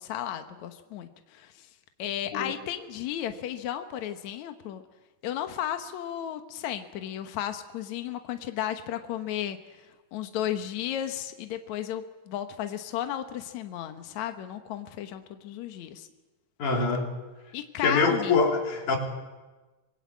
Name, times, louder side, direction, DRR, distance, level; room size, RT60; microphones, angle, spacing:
voice 1, 0.0-1.7 2.0-4.8 5.2-9.6 10.1-16.1 17.5-18.3, left 11 dB, 80° left, 7 dB, 1.6 m, -34 dB
voice 2, 16.6-17.1 17.8-19.0, left 4 dB, 45° left, 1 dB, 4.5 m, -24 dB
25.5 x 21.0 x 8.5 m, 1.2 s
omnidirectional pair, 5.1 m